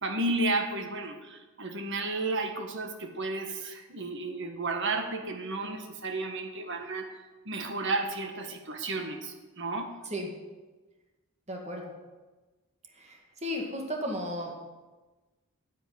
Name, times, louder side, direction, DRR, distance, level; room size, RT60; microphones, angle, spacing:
voice 1, 0.0-7.2 7.4-9.9, right 2 dB, 55° right, 5 dB, 1.7 m, -32 dB
voice 2, 11.5-11.9 13.4-14.5, equal, 30° right, 1 dB, 2.3 m, -33 dB
10.5 x 7.8 x 9.6 m, 1.2 s
head